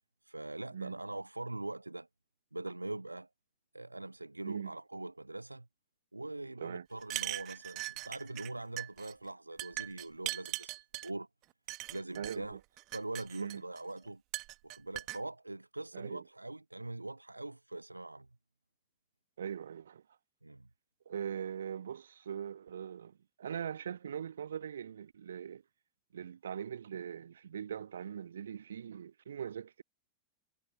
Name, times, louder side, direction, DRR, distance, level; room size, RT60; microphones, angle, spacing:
voice 1, 0.2-2.1 2.5-3.3 3.7-5.7 6.1-10.7 11.0-11.3 11.9-12.6 12.9-14.2 14.6-18.3 20.4-20.7, right 2 dB, 85° right, 0.9 m, -42 dB
voice 2, 4.4-4.7 6.6-6.9 12.2-12.6 13.4-13.6 15.9-16.2 19.4-20.0 21.0-25.6 26.1-29.8, right 8 dB, 65° right, 1.2 m, -41 dB
sound 1, 7.0-8.5 8.8-9.1 9.6-11.1 11.7-12.4 12.8-13.8 14.3-15.2, right 21 dB, 40° right, 1.5 m, -40 dB
figure-of-eight pair, 90°, 0 cm